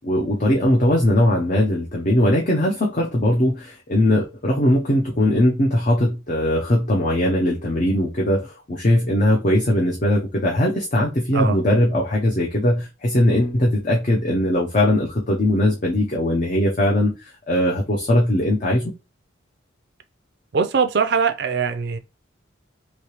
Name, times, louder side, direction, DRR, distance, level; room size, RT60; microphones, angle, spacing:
voice 1, 0.0-17.1 17.5-18.9, left 1 dB, 40° left, 0.6 m, -20 dB
voice 2, 20.5-22.0, right 5 dB, 55° right, 0.4 m, -21 dB
3.2 x 2.8 x 2.9 m
head